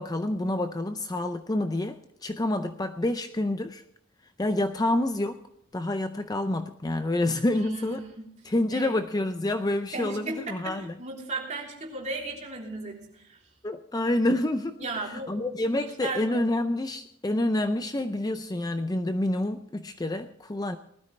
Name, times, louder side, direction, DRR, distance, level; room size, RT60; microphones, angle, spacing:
voice 1, 0.0-3.8 4.4-5.4 5.7-8.0 8.4-10.9 13.6-20.8, left 1 dB, 15° left, 8 dB, 0.5 m, -28 dB
voice 2, 7.5-8.3 8.7-8.9 9.9-13.4 14.8-16.4, right 2 dB, 35° right, -2 dB, 3.5 m, -36 dB
19.5 x 13.0 x 3.2 m, 0.73 s
head